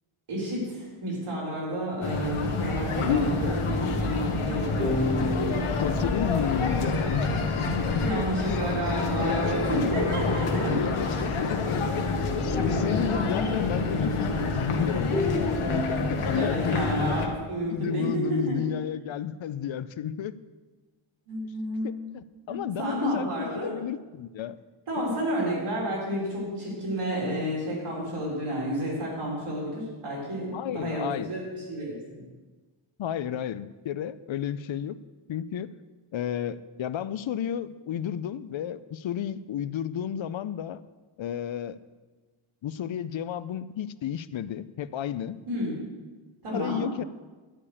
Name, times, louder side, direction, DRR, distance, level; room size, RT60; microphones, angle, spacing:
voice 1, 0.3-5.1 8.0-10.7 16.3-18.8 21.3-22.1 22.5-23.7 24.9-32.2 45.5-45.7 46.4-46.8, equal, 85° right, -4 dB, 4.0 m, -31 dB
sound 1, 2.0-17.3, left 3 dB, 85° left, 1.4 m, -27 dB
sound 2, 4.8-9.8 10.1-10.2 10.5-10.9 11.3-11.9 12.3-14.6 15.0-16.2, left 1 dB, 15° left, 3.2 m, -34 dB
voice 2, 5.8-8.2 8.7-9.4 10.3-16.9 17.7-20.3 21.8-24.6 25.0-25.1 30.5-31.3 33.0-35.0 35.3-35.7 36.1-40.8 41.2-41.8 42.6-45.4 46.5-47.0, left 9 dB, 65° left, 15 dB, 0.6 m, -32 dB
11.0 x 5.0 x 8.5 m, 1.3 s
wide cardioid pair, 100°, 49 cm